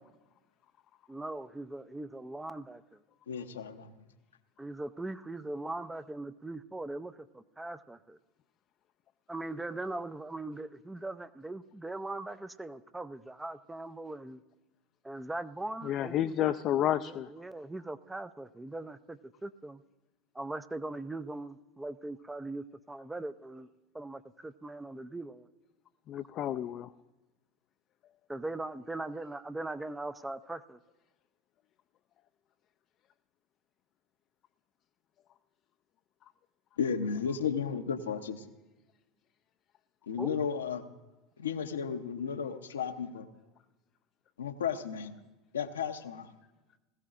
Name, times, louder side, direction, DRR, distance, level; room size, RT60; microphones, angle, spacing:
voice 1, 1.1-3.0 4.6-8.2 9.3-14.4 15.0-16.6 17.1-19.8 20.3-23.7 23.9-25.5 28.3-30.8 40.2-40.4, right 2 dB, 10° right, 13 dB, 0.5 m, -40 dB
voice 2, 3.3-3.9 36.8-38.5 40.1-40.8 41.4-43.3 44.4-45.1 45.5-46.3, left 7 dB, 80° left, 7 dB, 0.8 m, -34 dB
voice 3, 15.8-17.3 26.1-26.9, left 11 dB, 45° left, 8 dB, 0.4 m, -30 dB
20.0 x 14.5 x 2.5 m, 1.1 s
hypercardioid pair, 80°, 0 cm